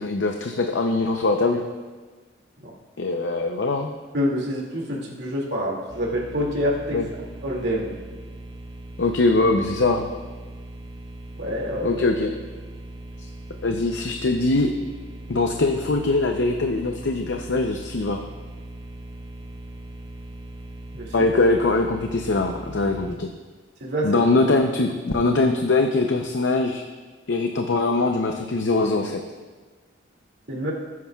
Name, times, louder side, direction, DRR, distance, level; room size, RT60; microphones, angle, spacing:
voice 1, 0.0-1.6 3.0-3.9 6.9-7.1 9.0-10.1 11.8-12.3 13.6-14.8 15.3-18.2 21.1-23.3 24.0-26.8 27.3-29.2, left 2 dB, 70° left, 4 dB, 0.6 m, -22 dB
voice 2, 4.1-7.0 7.4-8.0 11.4-12.0 20.9-21.3 23.8-24.2 30.5-30.7, equal, 60° right, -2 dB, 2.3 m, -27 dB
sound 1, 5.9-23.2, right 2 dB, 20° right, 0.6 m, -39 dB
19.5 x 9.5 x 2.4 m, 1.4 s
head